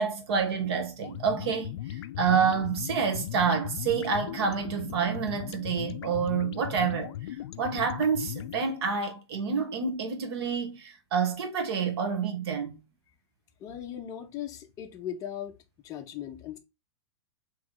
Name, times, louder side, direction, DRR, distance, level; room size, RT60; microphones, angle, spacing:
voice 1, 0.0-7.1 7.6-12.7, right 6 dB, 60° right, 1.2 m, -28 dB
sound 1, 1.0-8.7, left 13 dB, 70° left, 0.4 m, -38 dB
voice 2, 13.6-15.5 15.8-16.6, left 10 dB, 25° left, 0.6 m, -38 dB
3.2 x 3.0 x 3.7 m
hypercardioid pair, 150°, 15 cm